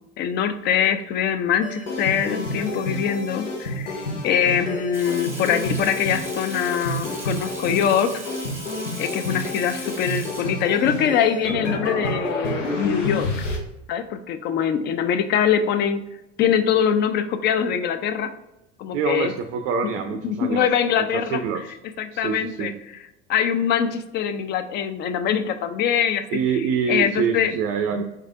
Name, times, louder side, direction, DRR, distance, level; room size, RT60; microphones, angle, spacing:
voice 1, 0.2-8.2 9.0-13.3 13.9-16.0 16.4-18.3 18.8-19.3 19.8-19.9 20.2-21.4 22.0-26.2 26.5-27.5 28.0-28.1, left 8 dB, 30° left, 10 dB, 0.3 m, -23 dB
sound 1, 1.6-13.6, left 1 dB, 80° left, 0.8 m, -29 dB
Water tap faucet / Sink (filling or washing), 4.9-10.8, right 1 dB, 5° right, 1.0 m, -39 dB
voice 2, 18.9-20.6 21.1-21.6 22.1-22.7 26.3-28.0, right 6 dB, 45° right, 6 dB, 0.5 m, -25 dB
4.4 x 3.2 x 2.4 m, 0.92 s
figure-of-eight pair, 70°, 36 cm